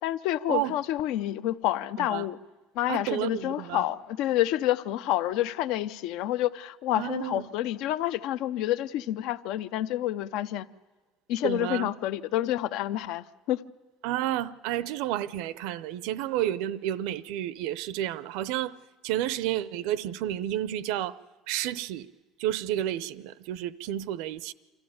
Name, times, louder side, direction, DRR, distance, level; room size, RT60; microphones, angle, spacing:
voice 1, 0.0-2.4 2.7-10.7 11.3-13.6, left 13 dB, 70° left, 0.6 m, -28 dB
voice 2, 2.9-3.8 7.0-7.5 11.4-11.9 14.0-18.8 19.0-21.2 21.5-22.1 22.4-24.5, right 12 dB, 80° right, 0.6 m, -31 dB
25.5 x 14.0 x 8.6 m
cardioid pair, 155°, 0 cm